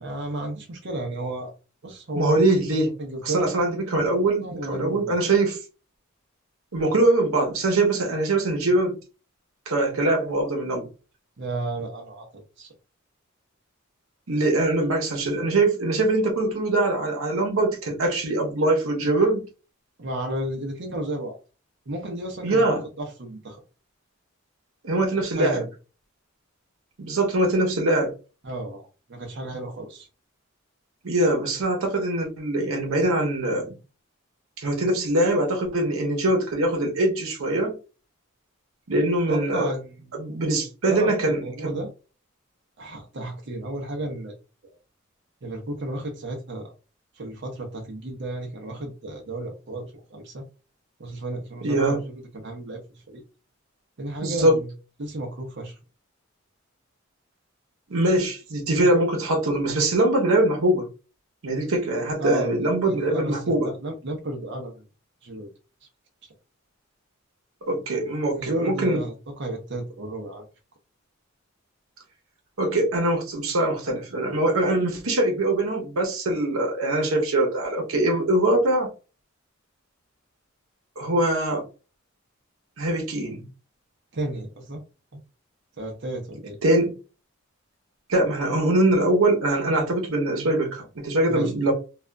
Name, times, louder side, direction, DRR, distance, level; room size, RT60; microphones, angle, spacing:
voice 1, 0.0-1.5 1.8-2.3 3.0-3.5 4.4-5.2 11.4-12.3 12.6-12.7 20.0-21.4 21.9-23.6 25.4-25.7 28.4-28.8 29.1-30.1 39.3-40.3 40.6-41.9 42.8-44.3 45.4-46.7 47.2-50.4 51.0-52.8 53.1-53.2 54.0-54.7 55.0-55.8 62.2-62.5 62.8-64.8 65.2-65.5 68.3-70.5 84.1-84.8 85.8-86.6 91.3-91.5, right 1 dB, 60° right, 0.7 m, -33 dB
voice 2, 2.1-2.9 3.2-5.6 6.7-9.0 9.7-10.9 14.3-19.4 22.4-22.8 24.8-25.6 27.0-28.1 31.0-33.8 34.6-37.8 38.9-39.7 40.1-41.8 51.6-52.0 54.2-54.6 57.9-60.9 61.4-63.7 67.7-69.0 72.6-78.9 81.0-81.6 82.8-83.5 86.6-86.9 88.1-91.7, right 2 dB, 90° right, 0.9 m, -23 dB
2.7 x 2.4 x 2.3 m
head